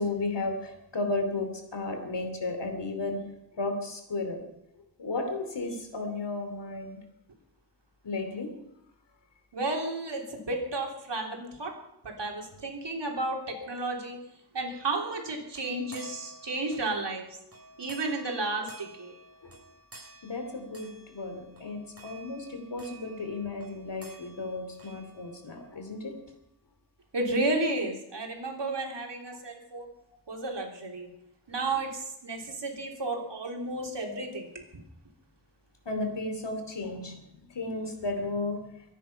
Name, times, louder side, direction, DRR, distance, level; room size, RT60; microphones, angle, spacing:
voice 1, 0.0-3.2 3.6-4.4 5.0-7.0 8.0-8.5 13.5-13.7 19.4-19.5 20.2-26.1 35.8-38.6, left 2 dB, 85° left, 6 dB, 3.0 m, -34 dB
voice 2, 9.5-11.7 12.0-14.2 14.5-17.2 17.8-19.1 27.1-29.9 30.3-31.1 31.5-34.6, right 2 dB, 85° right, 1 dB, 3.6 m, -32 dB
sound 1, 15.1-25.7, right 2 dB, 35° right, 6.8 m, -52 dB
24.0 x 10.0 x 5.7 m, 0.80 s
wide cardioid pair, 95°, 41 cm